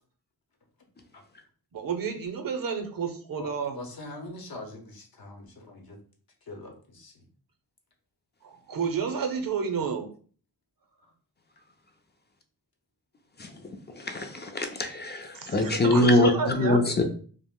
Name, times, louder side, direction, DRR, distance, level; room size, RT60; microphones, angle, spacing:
voice 1, 1.7-3.8 8.4-10.1 15.3-17.0, right 6 dB, 60° right, 6 dB, 0.6 m, -30 dB
voice 2, 3.7-6.0 6.5-7.1, left 2 dB, 65° left, 2 dB, 0.8 m, -42 dB
voice 3, 14.1-17.0, left 2 dB, 25° left, 5 dB, 0.5 m, -23 dB
2.4 x 2.1 x 3.5 m, 0.43 s
cardioid pair, 75°, 39 cm